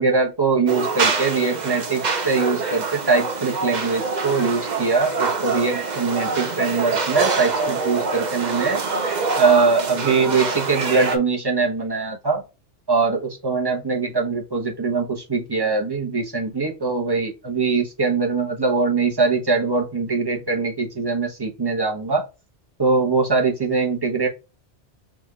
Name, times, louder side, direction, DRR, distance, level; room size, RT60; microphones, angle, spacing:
voice 1, 0.0-8.8 9.4-12.4 12.9-22.2 22.8-24.3, right 4 dB, 25° right, 0 dB, 1.0 m, -22 dB
sound 1, 0.7-11.2, right 4 dB, 45° right, 0.8 m, -25 dB
3.7 x 3.3 x 3.6 m, 0.28 s
omnidirectional pair, 1.1 m